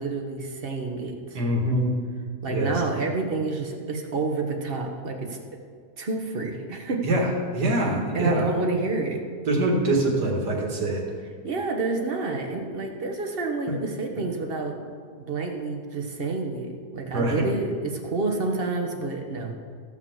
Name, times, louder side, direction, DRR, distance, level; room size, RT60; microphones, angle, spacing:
voice 1, 0.0-1.4 2.4-5.4 6.0-7.0 7.6-7.9 8.1-9.2 11.4-14.8 15.2-19.6, right 3 dB, 40° right, 3 dB, 1.4 m, -29 dB
voice 2, 1.3-2.0 2.5-2.7 7.0-8.5 9.5-11.0 17.1-17.5, right 1 dB, 80° right, 0 dB, 2.4 m, -24 dB
15.0 x 5.8 x 7.2 m, 2.1 s
omnidirectional pair, 1.7 m